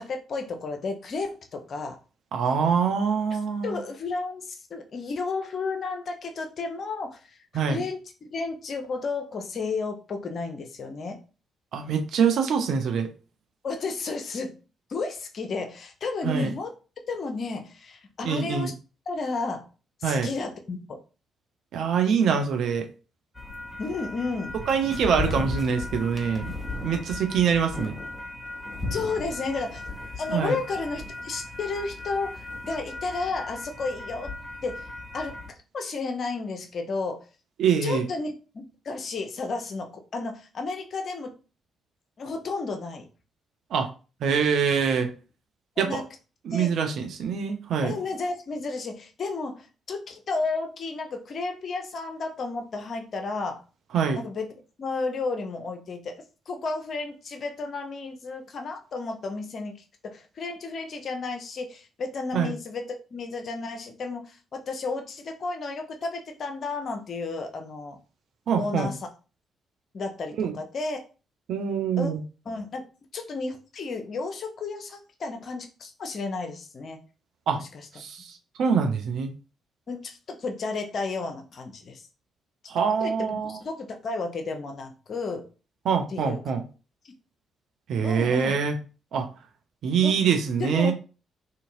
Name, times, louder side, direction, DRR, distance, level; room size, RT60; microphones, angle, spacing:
voice 1, 0.0-2.0 3.6-8.0 8.3-11.2 13.6-14.6 14.9-16.7 17.1-18.7 19.1-19.7 20.0-21.0 23.8-24.6 28.9-29.8 30.2-34.3 34.6-35.4 35.7-37.2 37.8-38.3 38.8-41.3 42.2-43.1 45.8-46.0 46.5-46.7 47.8-53.6 54.1-54.5 54.8-56.2 56.5-59.7 60.0-68.0 68.6-69.1 69.9-71.0 72.0-72.1 72.5-72.8 73.1-77.0 77.5-77.9 79.9-82.0 83.0-85.5 86.1-86.4 88.0-88.6 90.0-90.2 90.6-90.9, left 3 dB, 50° left, 4 dB, 0.5 m, -32 dB
voice 2, 2.3-3.8 7.5-7.8 11.7-13.1 16.2-16.5 18.2-18.7 20.0-20.3 21.7-22.9 24.7-26.6 26.8-28.0 30.3-30.6 37.6-38.1 43.7-43.9 44.2-45.1 45.8-46.0 46.4-47.9 53.9-54.2 62.3-62.5 68.5-68.9 70.4-70.5 71.5-72.2 77.5-77.6 78.0-79.3 82.7-83.6 85.9-86.6 87.9-88.8 89.1-89.3 89.8-90.9, right 6 dB, 60° right, 5 dB, 0.5 m, -24 dB
sound 1, 23.3-35.5, left 2 dB, 15° left, 0.8 m, -36 dB
2.7 x 2.6 x 2.6 m, 0.34 s
figure-of-eight pair, 40°, 0 cm